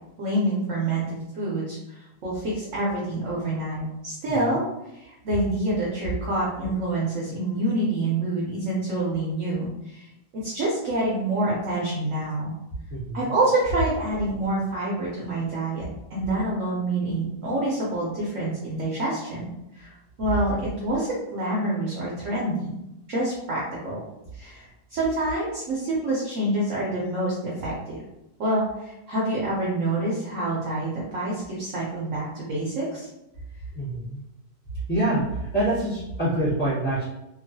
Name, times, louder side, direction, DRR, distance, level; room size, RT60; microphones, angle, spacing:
voice 1, 0.2-4.6 4.9-10.1 10.4-12.6 13.1-22.7 23.1-24.0 24.3-28.0 28.4-33.1, right 1 dB, 65° right, -5 dB, 0.8 m, -27 dB
voice 2, 33.7-34.2 34.9-37.0, right 1 dB, 25° left, -9 dB, 1.3 m, -25 dB
2.9 x 2.3 x 2.6 m, 0.91 s
omnidirectional pair, 1.7 m